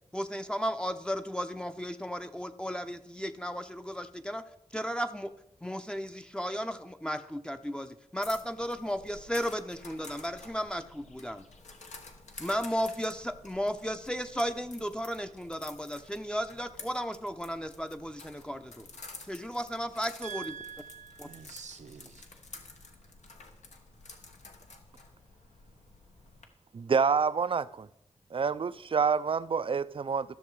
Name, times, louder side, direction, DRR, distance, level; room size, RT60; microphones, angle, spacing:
voice 1, 0.1-5.3 5.6-11.5 12.4-18.9 19.3-20.6 21.2-21.3, equal, 5° left, 0.6 m, -34 dB
sound 1, 8.2-26.4, left 3 dB, 75° left, 1.2 m, -51 dB
voice 2, 20.2-22.2, right 7 dB, 75° right, 0.8 m, -44 dB
voice 3, 26.7-27.9 28.3-30.3, right 5 dB, 50° right, 0.4 m, -27 dB
13.0 x 6.5 x 4.7 m
wide cardioid pair, 70°, 12 cm